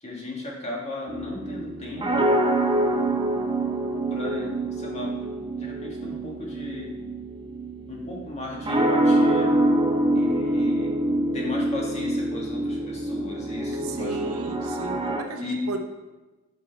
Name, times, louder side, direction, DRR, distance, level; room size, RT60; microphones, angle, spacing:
voice 1, 0.0-2.3 4.1-6.9 7.9-9.5 10.1-11.0 11.3-14.3 15.0-15.1 15.4-15.7, left 2 dB, 30° left, -3 dB, 1.5 m, -35 dB
sound 1, 1.1-15.2, right 1 dB, 20° right, 0.5 m, -25 dB
voice 2, 13.7-15.8, right 4 dB, 75° right, 5 dB, 0.8 m, -33 dB
5.8 x 5.6 x 4.4 m, 1.2 s
head